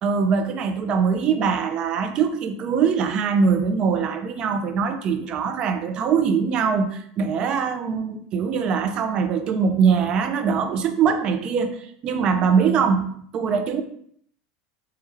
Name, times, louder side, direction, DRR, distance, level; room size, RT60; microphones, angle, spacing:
voice 1, 0.0-13.8, right 6 dB, 35° right, 8 dB, 0.3 m, -22 dB
3.3 x 2.2 x 3.0 m, 0.65 s
supercardioid pair, 145°, 3 cm